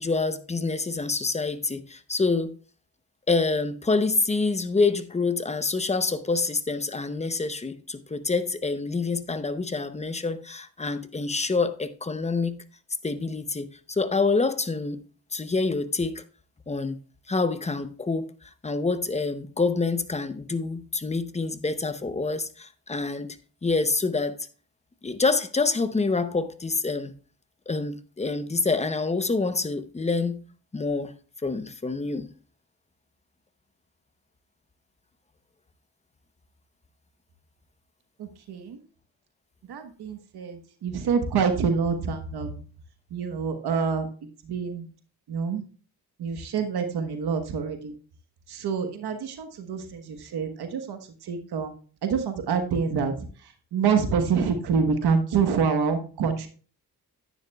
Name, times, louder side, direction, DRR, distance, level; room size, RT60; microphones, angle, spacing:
voice 1, 0.0-2.5 3.3-12.6 13.0-15.0 15.3-16.2 16.7-17.0 17.3-23.4 23.6-24.4 25.0-27.1 27.7-30.4 30.7-31.1 31.4-32.3, left 3 dB, 15° left, 0.7 m, -27 dB
voice 2, 38.2-38.8 39.7-42.6 43.1-44.1 44.4-44.9 45.3-45.6 46.2-47.9 48.5-51.7 52.0-53.2 53.7-56.5, right 6 dB, 85° right, 1.3 m, -26 dB
10.0 x 9.5 x 2.3 m
cardioid pair, 95°, 38 cm